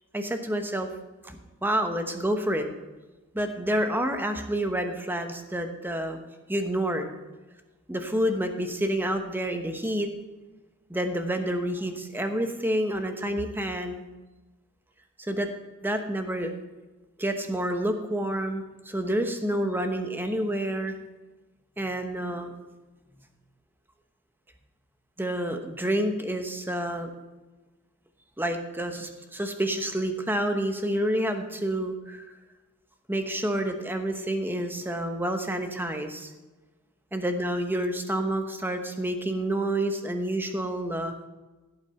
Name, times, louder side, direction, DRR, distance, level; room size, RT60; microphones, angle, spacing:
voice 1, 0.1-0.9 1.2-2.7 3.3-6.2 6.5-7.1 7.9-10.1 10.9-14.0 15.2-15.5 15.8-16.5 17.2-21.0 21.8-22.6 25.2-27.1 28.4-32.3 33.1-36.3 37.1-41.1, right 1 dB, 10° right, 6 dB, 1.0 m, -28 dB
15.5 x 8.2 x 4.4 m, 1.2 s
head